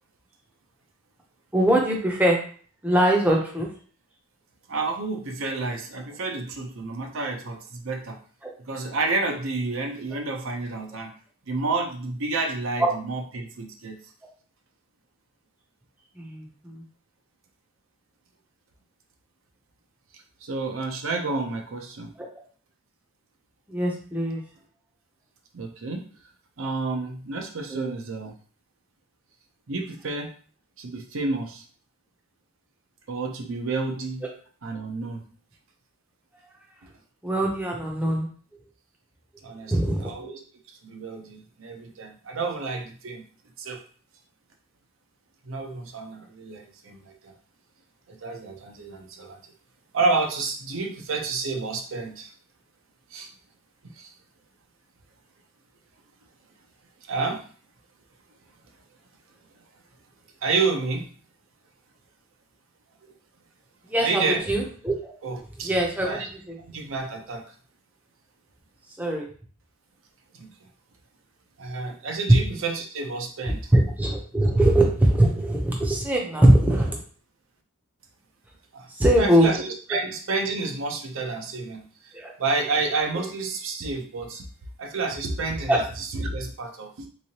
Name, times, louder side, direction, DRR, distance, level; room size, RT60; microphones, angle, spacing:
voice 1, 1.5-2.4 2.8-3.7 8.4-8.5 12.8-12.9 16.2-16.8 23.7-24.4 27.7-27.9 37.2-38.3 39.7-40.1 63.9-65.1 65.6-66.2 66.5-66.6 69.0-69.3 73.7-77.0 78.9-79.5 79.9-80.0 82.1-82.3 83.1-83.2 85.7-85.8, right 1 dB, 5° right, -1 dB, 0.6 m, -22 dB
voice 2, 4.7-8.2 8.7-11.1 11.5-14.0 20.1-22.1 25.5-26.1 26.6-28.3 29.7-30.3 30.8-31.6 33.1-34.2 34.6-35.2 39.4-40.4 40.8-43.2 43.6-43.8 45.5-47.3 48.1-49.4 49.9-52.3 53.1-53.3 53.8-54.1 57.1-57.5 60.4-61.1 64.0-64.5 65.2-65.7 66.1-66.3 66.6-67.4 70.3-70.5 71.6-73.7 78.7-78.9 79.2-82.1 82.4-84.4 84.8-87.1, right 3 dB, 60° right, 3 dB, 0.6 m, -30 dB
3.7 x 3.0 x 2.8 m, 0.43 s
head